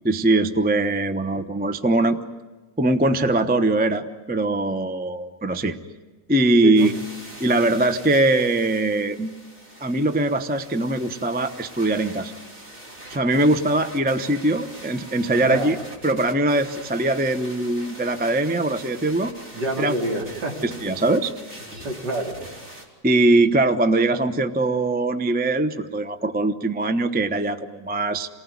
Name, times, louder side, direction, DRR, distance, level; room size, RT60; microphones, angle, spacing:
voice 1, 0.0-2.2 2.8-5.8 6.3-6.9 7.4-9.3 9.8-12.3 13.1-15.8 16.0-19.3 19.8-19.9 20.8-21.3 23.0-28.3, right 2 dB, 10° right, 9 dB, 0.5 m, -21 dB
voice 2, 6.6-7.0 15.3-15.7 19.5-20.6 21.8-22.4, right 1 dB, 70° right, 1 dB, 3.7 m, -28 dB
sound 1, 6.8-22.9, right 1 dB, 40° right, 4.0 m, -42 dB
28.5 x 19.5 x 9.6 m, 1.3 s
omnidirectional pair, 1.9 m